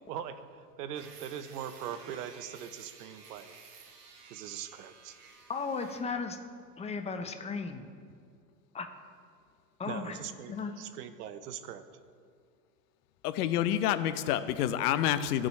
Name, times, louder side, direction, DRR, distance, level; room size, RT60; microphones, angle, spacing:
voice 1, 0.1-3.5 4.3-5.2 9.9-11.8, right 9 dB, 70° right, 12 dB, 0.8 m, -41 dB
sound 1, 0.9-6.1, right 5 dB, 50° right, 1.5 m, -53 dB
voice 2, 5.5-6.4 6.8-7.9 8.7-8.9 9.8-10.2 10.5-10.7, left 4 dB, 15° left, 7 dB, 0.5 m, -35 dB
voice 3, 13.2-15.5, left 11 dB, 70° left, 12 dB, 0.7 m, -28 dB
16.0 x 6.1 x 3.2 m, 2.1 s
hypercardioid pair, 105°, 48 cm